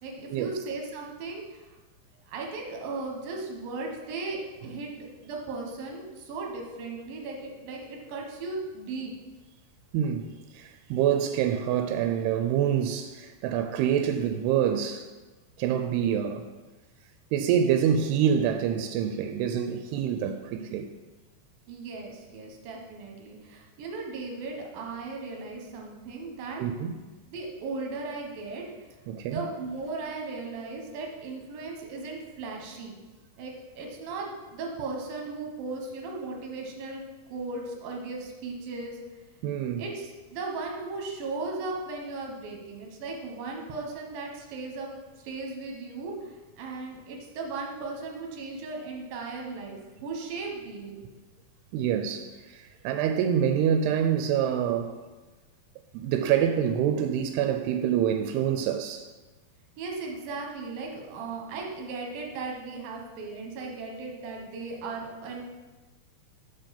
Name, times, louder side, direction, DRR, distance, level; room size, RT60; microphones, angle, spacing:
voice 1, 0.0-1.6 2.3-4.9 5.2-9.1 21.7-26.6 27.3-28.6 29.2-33.0 33.4-37.0 37.3-39.0 39.8-44.9 45.2-51.0 59.8-65.4, right 3 dB, 70° right, 2.8 m, -37 dB
voice 2, 9.9-15.1 15.6-16.5 17.3-20.9 26.6-27.0 29.1-29.5 39.4-39.8 51.7-55.0 55.9-59.1, right 9 dB, 90° right, 2.6 m, -26 dB
7.7 x 5.2 x 5.8 m
omnidirectional pair, 4.6 m